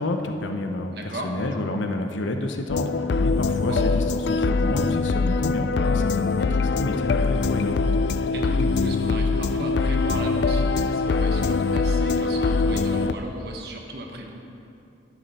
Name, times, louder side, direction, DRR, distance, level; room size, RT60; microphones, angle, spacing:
voice 1, 0.0-2.9 3.2-7.8, left 2 dB, 90° left, 5 dB, 0.8 m, -29 dB
voice 2, 0.9-1.3 3.6-3.9 8.3-14.4, right 1 dB, 60° right, 1 dB, 1.3 m, -35 dB
sound 1, 2.7-13.1, left 4 dB, 65° left, 0.4 m, -23 dB
11.0 x 11.0 x 4.3 m, 2.6 s
head